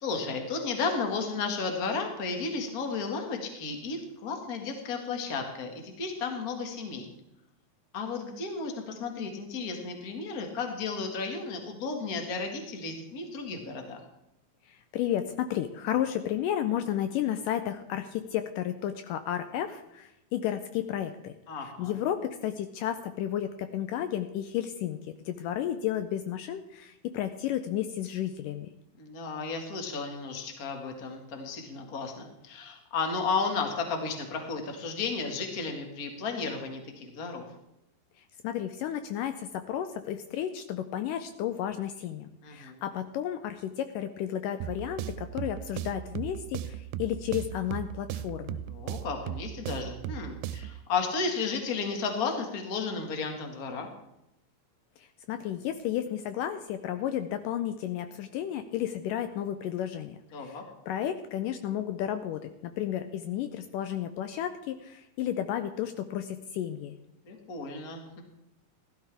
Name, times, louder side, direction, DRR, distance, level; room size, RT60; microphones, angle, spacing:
voice 1, 0.0-7.1 7.9-14.0 21.5-22.0 29.0-37.4 42.4-42.8 48.6-53.9 60.3-60.6 67.2-68.2, left 4 dB, 40° left, 3 dB, 1.4 m, -33 dB
voice 2, 14.7-21.3 21.8-25.0 25.3-28.7 38.4-48.6 55.3-60.6 60.9-67.0, left 11 dB, 80° left, 9 dB, 2.1 m, -32 dB
sound 1, 44.6-50.8, right 11 dB, 90° right, 2.4 m, -37 dB
16.0 x 13.0 x 3.5 m, 0.86 s
omnidirectional pair, 4.1 m